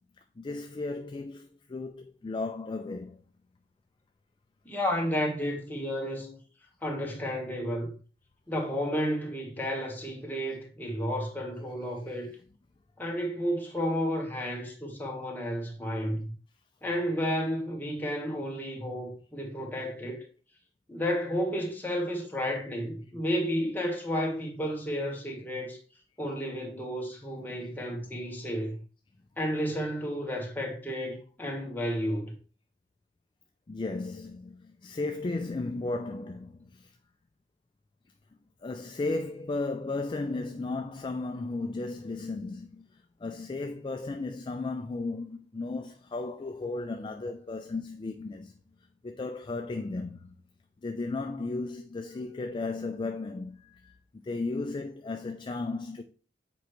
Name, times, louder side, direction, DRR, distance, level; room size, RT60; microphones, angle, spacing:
voice 1, 0.4-3.2 12.0-12.2 27.5-27.7 33.7-36.9 38.6-48.5 49.0-50.3 50.8-54.0 54.2-56.0, left 3 dB, 25° left, 0.4 m, -35 dB
voice 2, 4.6-6.4 6.8-8.0 8.5-12.3 13.0-16.3 16.8-20.2 20.9-25.8 26.2-28.8 29.4-32.3, equal, 10° left, 1.3 m, -32 dB
7.2 x 4.5 x 3.0 m
head